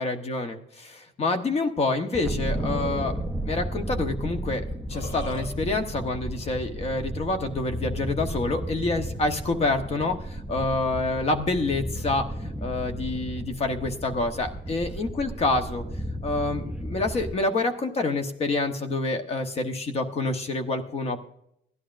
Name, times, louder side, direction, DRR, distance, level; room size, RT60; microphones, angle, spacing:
voice 1, 0.0-3.2 3.5-15.8 16.2-21.3, left 2 dB, 30° left, 7 dB, 1.0 m, -27 dB
sound 1, 2.1-17.4, right 1 dB, 5° right, 0.5 m, -33 dB
Burping eructation, 4.7-5.5, left 3 dB, 80° left, 2.0 m, -39 dB
16.5 x 11.0 x 2.5 m, 0.75 s
cardioid pair, 175°, 20 cm